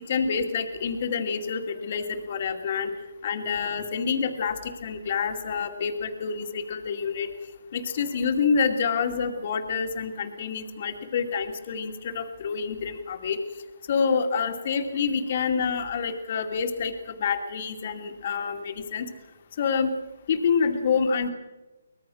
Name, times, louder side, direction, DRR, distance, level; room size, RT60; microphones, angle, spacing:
voice 1, 0.1-2.9 3.2-7.3 7.7-13.4 13.9-19.1 19.6-19.9 20.3-21.3, left 6 dB, 45° left, 5 dB, 2.5 m, -27 dB
24.0 x 20.0 x 6.4 m, 1.1 s
hypercardioid pair, 155°, 0 cm